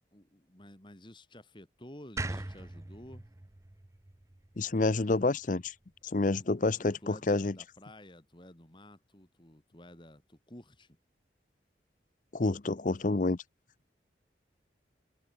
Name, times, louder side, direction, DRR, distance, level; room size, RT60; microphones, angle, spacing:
voice 1, 0.1-3.3 6.4-6.5 6.8-11.0, left 1 dB, 25° left, 2.5 m, -52 dB
sound 1, 2.2-5.3, right 2 dB, 15° right, 0.5 m, -41 dB
voice 2, 4.6-5.7 6.1-7.5 12.3-13.4, left 2 dB, 45° left, 0.7 m, -28 dB
head